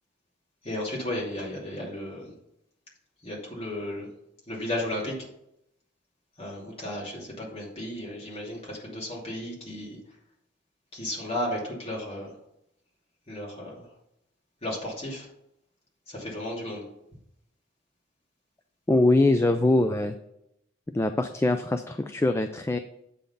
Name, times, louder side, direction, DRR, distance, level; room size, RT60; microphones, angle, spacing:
voice 1, 0.6-2.3 3.2-4.1 4.5-5.1 6.4-10.0 10.9-12.3 13.3-13.9 14.6-15.3 16.1-16.8, left 1 dB, 30° left, -4 dB, 2.7 m, -34 dB
voice 2, 18.9-20.2 20.9-22.8, left 2 dB, 15° left, 8 dB, 0.3 m, -23 dB
8.3 x 3.8 x 6.9 m, 0.80 s
head